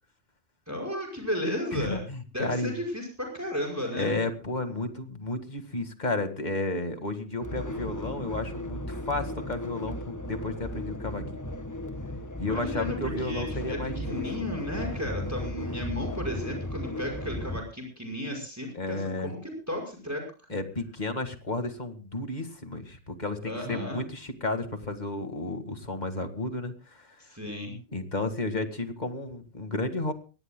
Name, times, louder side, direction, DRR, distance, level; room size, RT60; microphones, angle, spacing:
voice 1, 0.7-2.0 2.3-4.1 12.4-20.2 23.4-24.0 27.2-27.7, left 1 dB, 15° right, 2 dB, 5.7 m, -34 dB
voice 2, 1.7-2.7 3.9-11.4 12.4-14.2 18.7-19.3 20.5-27.2 27.9-30.1, left 2 dB, 40° left, 7 dB, 2.0 m, -32 dB
sound 1, 7.4-17.6, left 1 dB, 15° left, 1.2 m, -35 dB
24.0 x 18.5 x 2.2 m, 0.34 s
omnidirectional pair, 1.2 m